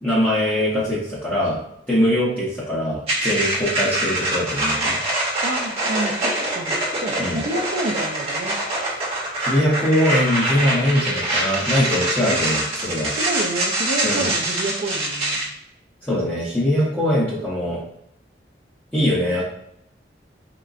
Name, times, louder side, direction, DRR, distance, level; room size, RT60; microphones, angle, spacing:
voice 1, 0.0-1.6 1.9-5.0 7.2-7.4 9.4-13.1 14.0-14.3 16.0-17.8 18.9-19.4, left 1 dB, 10° left, -9 dB, 0.8 m, -22 dB
sound 1, 3.1-15.4, right 1 dB, 35° right, 0.9 m, -24 dB
voice 2, 5.4-8.5 12.3-12.4 13.1-15.4, right 2 dB, 55° right, 2 dB, 0.4 m, -29 dB
3.7 x 2.1 x 2.4 m, 0.75 s
head